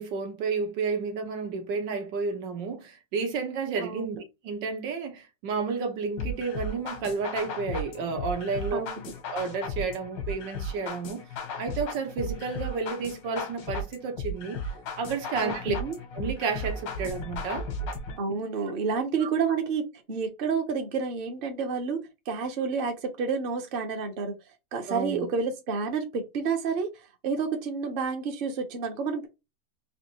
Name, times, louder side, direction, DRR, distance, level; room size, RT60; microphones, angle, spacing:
voice 1, 0.0-4.2 4.4-8.8 9.3-11.3 11.6-14.6 15.0-15.7 16.1-17.7 19.2-19.3 24.9-25.3, right 5 dB, 90° right, 1.6 m, -31 dB
voice 2, 3.8-4.1 8.7-9.0 15.4-15.9 18.2-19.8 20.1-22.0 22.3-24.3 24.7-26.9 27.2-29.3, right 5 dB, 40° right, 0.8 m, -29 dB
sound 1, 6.2-18.2, left 2 dB, 85° left, 1.7 m, -35 dB
4.1 x 2.8 x 2.9 m
omnidirectional pair, 1.9 m